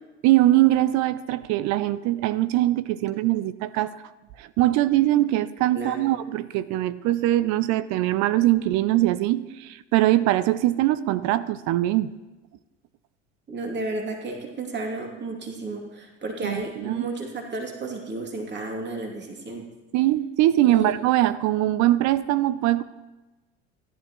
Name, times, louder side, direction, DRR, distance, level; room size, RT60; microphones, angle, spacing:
voice 1, 0.2-4.0 4.4-12.1 16.4-17.1 19.9-22.8, right 15 dB, 55° right, 16 dB, 0.6 m, -22 dB
voice 2, 13.5-19.6 20.6-20.9, right 2 dB, 30° right, 1 dB, 2.7 m, -32 dB
16.0 x 11.0 x 3.1 m, 1.1 s
hypercardioid pair, 80°, 35 cm